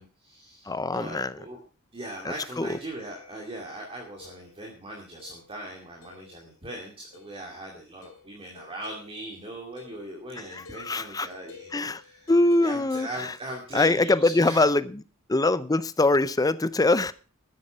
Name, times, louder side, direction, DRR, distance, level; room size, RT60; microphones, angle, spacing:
voice 1, 0.0-1.6 1.9-12.3 12.6-14.7, right 1 dB, 25° right, 2.3 m, -39 dB
voice 2, 0.7-1.3 2.2-2.8 10.4-11.3 11.7-12.0 12.3-13.3 13.7-15.0 15.3-17.1, left 2 dB, 15° left, 0.5 m, -23 dB
sound 1, 3.0-4.7 5.2-5.6 6.0-6.6 7.1-7.5 8.0-14.2, left 5 dB, 70° left, 4.1 m, -52 dB
13.0 x 9.8 x 5.1 m
head